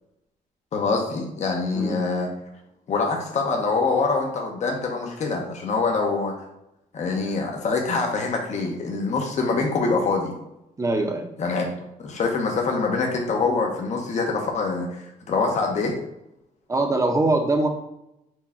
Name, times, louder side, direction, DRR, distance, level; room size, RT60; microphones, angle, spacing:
voice 1, 0.7-2.3 2.9-6.3 6.9-10.3 11.4-11.7 12.0-16.0, left 4 dB, 50° left, 1 dB, 0.8 m, -24 dB
voice 2, 10.8-11.3 16.7-17.7, right 2 dB, 20° right, 4 dB, 0.7 m, -22 dB
4.5 x 2.3 x 4.2 m, 0.85 s
cardioid pair, 120°, 15 cm